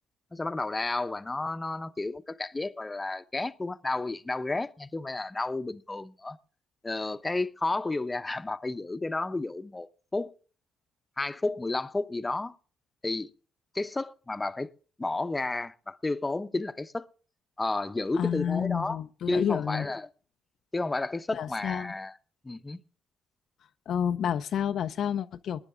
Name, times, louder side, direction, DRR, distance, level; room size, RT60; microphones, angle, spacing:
voice 1, 0.3-6.4 6.8-10.3 11.2-12.6 13.0-13.3 13.7-14.7 15.0-17.1 17.6-19.0 19.3-20.1 20.7-22.2 22.4-22.8, left 2 dB, 20° left, 0.9 m, -32 dB
voice 2, 18.2-19.9 21.3-21.9 23.9-25.6, left 8 dB, 65° left, 0.6 m, -30 dB
21.0 x 9.9 x 3.7 m
hypercardioid pair, 50°, 0 cm